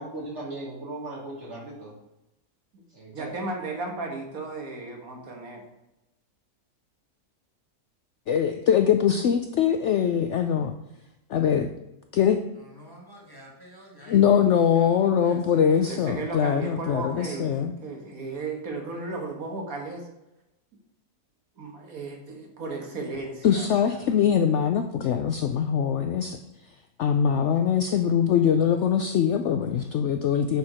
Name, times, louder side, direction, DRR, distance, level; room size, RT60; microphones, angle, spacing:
voice 1, 0.0-1.9 2.9-3.3, right 2 dB, 45° right, 3.0 m, -37 dB
voice 2, 3.1-5.6 15.9-20.1 21.6-24.0, right 3 dB, 65° right, 1.7 m, -35 dB
voice 3, 8.3-10.8 11.3-11.7 12.1-12.4 14.1-17.7 23.4-26.4 27.0-30.6, left 8 dB, 65° left, 0.7 m, -22 dB
voice 4, 12.6-14.2 14.5-15.6 17.2-17.4, equal, 15° left, 1.5 m, -49 dB
9.3 x 4.5 x 4.9 m
omnidirectional pair, 1.7 m